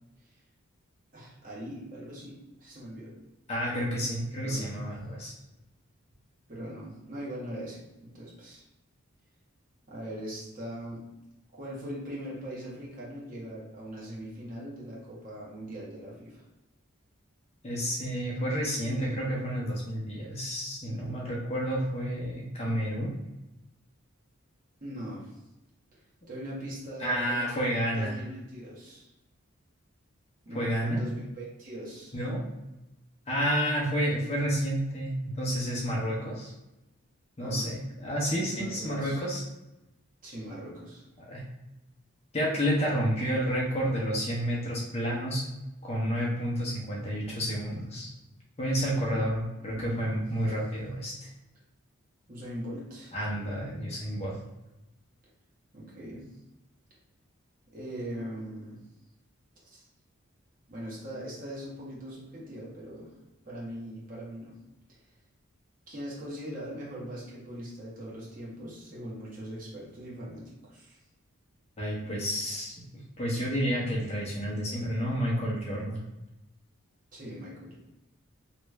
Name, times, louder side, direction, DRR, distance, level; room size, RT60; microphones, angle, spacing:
voice 1, 1.1-3.2 4.4-4.7 6.5-8.6 9.9-11.0 11.5-16.5 24.8-25.4 26.3-27.7 27.9-29.1 30.4-32.2 37.4-37.7 38.5-39.2 40.2-41.1 49.6-50.3 52.3-53.2 55.7-56.3 57.7-58.8 59.6-59.8 60.7-63.1 63.4-64.6 65.9-71.0 77.1-77.8, equal, 40° right, -6 dB, 1.1 m, -40 dB
voice 2, 3.5-5.3 17.6-23.1 27.0-28.1 30.5-31.0 32.1-32.4 33.3-36.5 37.4-39.4 41.3-41.4 42.3-45.4 45.8-48.1 48.6-51.3 53.1-54.4 71.8-72.7 73.2-76.0, equal, 30° left, -4 dB, 0.7 m, -30 dB
3.1 x 2.5 x 3.2 m, 0.97 s
head